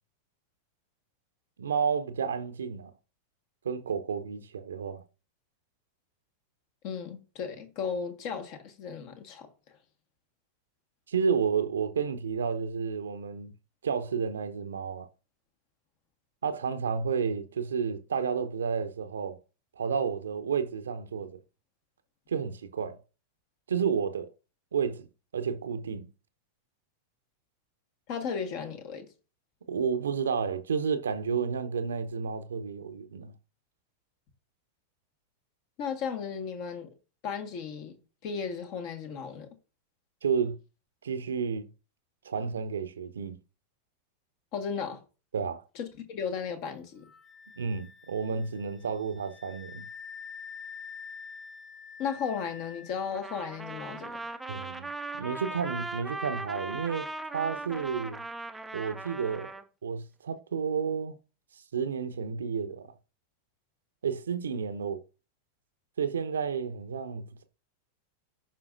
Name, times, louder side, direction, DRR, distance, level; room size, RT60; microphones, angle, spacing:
voice 1, 1.6-2.9 3.6-5.0 11.1-13.5 13.8-15.1 16.4-19.4 19.8-21.4 22.3-23.0 23.7-24.3 24.7-25.1 25.3-26.1 29.7-33.3 40.2-40.6 41.0-41.7 42.2-43.4 45.3-45.6 47.6-49.8 54.5-58.2 58.7-59.5 59.8-61.1 61.7-62.9 64.0-65.0 66.0-67.4, right 6 dB, 70° right, 0.8 m, -31 dB
voice 2, 6.8-9.5 28.1-29.1 35.8-36.9 37.2-39.5 44.5-45.0 45.7-47.1 52.0-54.2, left 6 dB, 45° left, 1.6 m, -35 dB
Wind instrument woodwind instrument, 47.0-54.4, left 6 dB, 20° left, 1.6 m, -47 dB
Trumpet, 53.1-59.6, right 2 dB, 5° right, 0.7 m, -39 dB
14.5 x 5.6 x 2.6 m
figure-of-eight pair, 90°, 0 cm